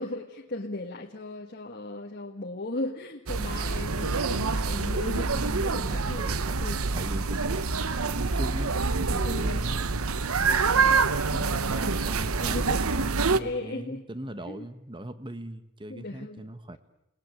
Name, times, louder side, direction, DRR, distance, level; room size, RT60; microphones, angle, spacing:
voice 1, 0.0-6.2 6.6-6.8 9.2-9.7 11.3-11.8 12.3-14.0 14.5-14.7 15.9-16.4, left 2 dB, 45° left, -1 dB, 1.9 m, -37 dB
sound 1, 3.3-13.4, right 4 dB, 85° right, 1.0 m, -26 dB
voice 2, 5.3-6.6 6.9-7.6 8.0-10.1 11.3-16.8, right 1 dB, 25° right, 12 dB, 1.3 m, -40 dB
29.5 x 20.0 x 8.1 m, 0.90 s
head